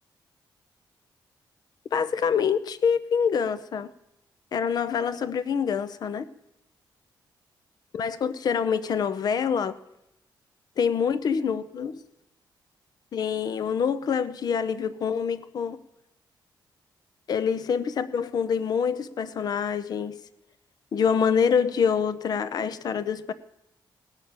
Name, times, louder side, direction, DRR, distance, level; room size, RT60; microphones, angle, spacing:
voice 1, 1.9-3.9 4.5-6.3 7.9-9.7 10.8-12.0 13.1-15.8 17.3-20.2 20.9-23.3, left 6 dB, 55° left, 14 dB, 0.7 m, -26 dB
18.5 x 6.5 x 8.8 m, 0.85 s
wide cardioid pair, 145°, 8 cm